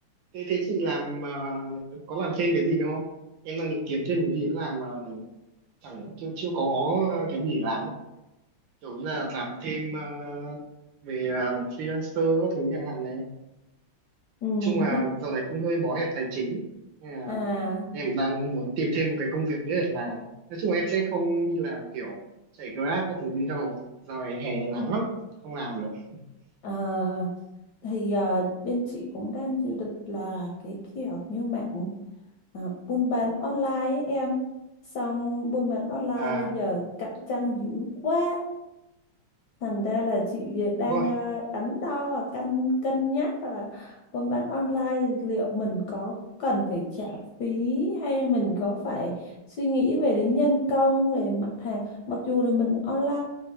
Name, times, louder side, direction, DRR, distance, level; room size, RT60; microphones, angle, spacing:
voice 1, 0.3-3.1 3.4-5.2 5.8-7.9 8.8-10.6 11.0-13.2 14.6-16.6 17.0-17.7 17.9-22.2 22.6-23.8 24.1-25.1 25.4-26.2 36.1-36.5 40.9-41.1, right 3 dB, 70° right, 0 dB, 1.3 m, -29 dB
voice 2, 14.4-15.0 17.3-17.9 26.6-27.3 27.8-31.9 32.5-34.4 34.9-38.4 39.6-46.1 46.4-49.3 49.6-51.8 52.1-53.2, left 1 dB, 70° left, -2 dB, 1.0 m, -27 dB
4.3 x 2.2 x 3.2 m, 0.93 s
omnidirectional pair, 2.3 m